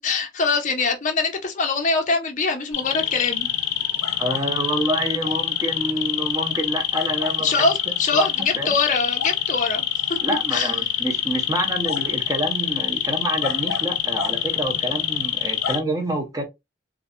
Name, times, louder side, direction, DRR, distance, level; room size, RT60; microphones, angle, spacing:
voice 1, 0.0-3.5 7.4-9.8 10.1-10.2 10.5-10.7, left 3 dB, 40° left, 0.5 m, -23 dB
sound 1, 2.7-15.8, left 11 dB, 90° left, 0.4 m, -25 dB
voice 2, 4.2-7.7 8.1-8.3 8.5-8.7 10.2-16.4, right 1 dB, 20° right, 0.5 m, -27 dB
2.4 x 2.2 x 2.6 m
head